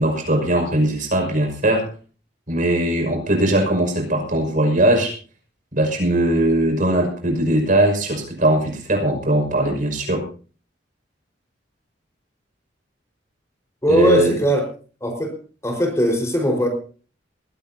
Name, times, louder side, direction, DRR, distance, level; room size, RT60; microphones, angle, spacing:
voice 1, 0.0-1.9 2.5-5.1 5.7-10.3 13.9-14.4, right 1 dB, 50° right, 3 dB, 5.9 m, -20 dB
voice 2, 13.8-14.6 15.0-15.3 15.6-16.7, equal, 15° left, 2 dB, 4.7 m, -19 dB
21.0 x 17.0 x 2.8 m, 0.39 s
head